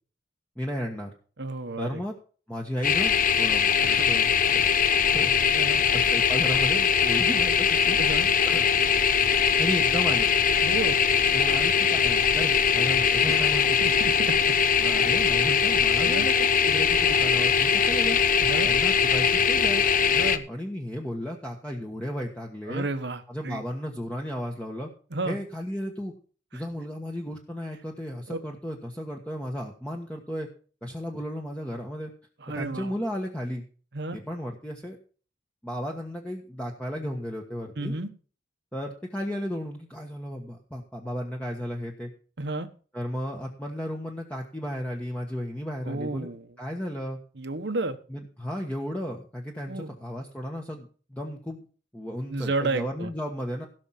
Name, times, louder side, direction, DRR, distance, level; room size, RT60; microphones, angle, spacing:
voice 1, 0.6-1.1 1.8-2.1 2.5-4.3 5.0-5.3 5.8-8.0 8.4-8.6 9.6-10.3 11.3-13.8 14.8-18.2 18.6-19.8 20.5-22.9 23.3-24.9 25.2-26.1 26.5-30.5 30.8-32.1 32.5-33.6 34.1-35.0 35.6-37.9 38.7-42.1 42.9-46.3 46.6-47.2 48.1-51.6 51.9-53.7, equal, 5° left, 0 dB, 1.3 m, -34 dB
voice 2, 1.4-2.0 3.8-4.2 4.5-4.9 5.5-5.8 8.0-8.3 10.6-11.0 13.2-13.4 13.8-14.5 15.2-15.3 16.0-16.3 18.4-18.7 20.1-20.5 22.7-23.6 25.1-25.4 26.5-26.6 28.3-28.4 32.4-32.9 33.9-34.2 37.8-38.1 42.4-42.7 45.8-46.5 47.4-48.0 49.6-49.9 52.3-53.1, right 2 dB, 60° right, 10 dB, 1.2 m, -32 dB
sound 1, 2.8-20.4, left 7 dB, 45° left, 0.8 m, -22 dB
16.5 x 6.3 x 5.7 m, 0.41 s
head